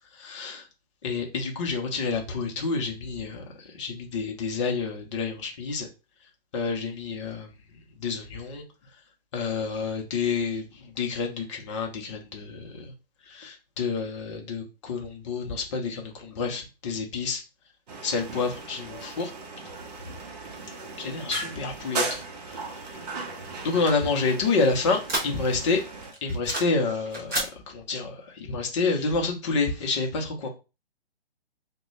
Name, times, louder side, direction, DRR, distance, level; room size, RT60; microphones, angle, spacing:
voice 1, 0.1-0.7 1.0-5.9 6.5-7.6 8.0-8.6 9.3-12.9 13.2-17.4 18.0-19.3 20.1-20.2 21.0-22.2 22.5-22.9 23.6-25.8 26.2-30.5, left 4 dB, 30° left, 2 dB, 0.7 m, -29 dB
sound 1, 17.9-26.1, right 3 dB, 40° right, 0.7 m, -37 dB
sound 2, 23.2-25.7 26.0-26.8 27.1-27.5, right 1 dB, 10° right, 0.5 m, -32 dB
3.5 x 2.2 x 3.2 m, 0.29 s
hypercardioid pair, 150°, 31 cm